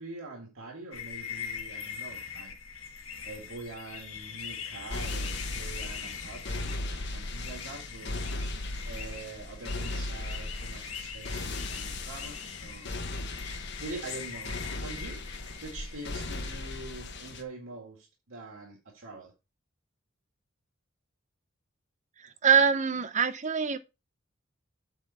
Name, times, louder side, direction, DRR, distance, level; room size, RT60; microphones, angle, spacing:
voice 1, 0.0-2.5 3.2-8.1 8.9-13.0 13.8-14.5 14.8-15.2 15.6-19.3, right 3 dB, 75° right, 2.1 m, -44 dB
sound 1, 0.9-16.8, left 6 dB, 90° left, 1.4 m, -42 dB
sound 2, 4.9-17.4, left 2 dB, 55° left, 1.2 m, -37 dB
voice 2, 22.4-23.8, right 6 dB, 35° right, 0.7 m, -23 dB
8.4 x 4.0 x 5.7 m
head